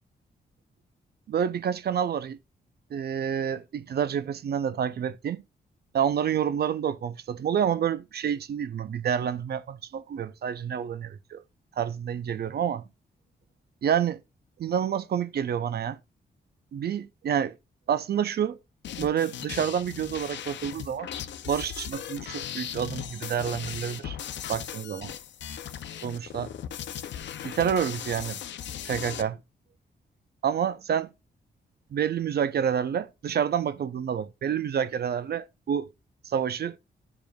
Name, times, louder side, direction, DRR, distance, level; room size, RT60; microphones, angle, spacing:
voice 1, 1.3-2.4 2.9-5.4 5.9-11.4 11.8-12.8 13.8-14.2 14.6-16.0 16.7-17.5 17.9-18.6 19.0-21.1 21.5-24.2 24.5-25.1 26.0-26.5 27.4-28.4 28.8-29.4 30.4-31.1 31.9-35.9 36.2-36.8, right 8 dB, 60° right, 0.4 m, -28 dB
sound 1, 18.8-29.2, left 10 dB, 75° left, 0.5 m, -38 dB
10.5 x 4.8 x 2.3 m
cardioid pair, 70°, 19 cm